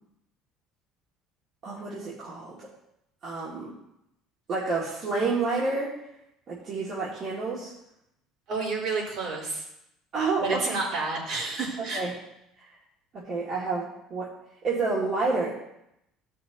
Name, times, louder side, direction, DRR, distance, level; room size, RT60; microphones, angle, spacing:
voice 1, 1.6-2.7 3.2-3.7 4.5-5.9 6.5-7.7 10.1-10.8 11.9-12.1 12.6-12.7 13.1-14.3 14.6-15.5, right 3 dB, 50° right, -7 dB, 2.5 m, -29 dB
voice 2, 8.5-9.6 10.4-12.0, right 3 dB, 65° right, -5 dB, 4.2 m, -29 dB
15.0 x 6.4 x 3.0 m, 0.82 s
cardioid pair, 115°, 0 cm